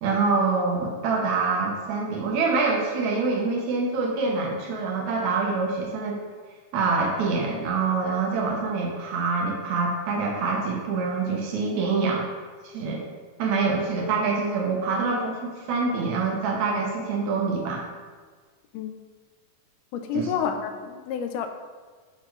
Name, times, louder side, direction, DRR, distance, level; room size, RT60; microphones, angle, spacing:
voice 1, 0.0-6.2 6.7-12.2 12.6-13.0 13.4-17.8 20.1-20.3, right 4 dB, 70° right, -1 dB, 2.0 m, -25 dB
voice 2, 19.9-21.5, left 6 dB, 85° left, 7 dB, 2.1 m, -29 dB
8.2 x 4.6 x 3.1 m, 1.5 s
omnidirectional pair, 3.7 m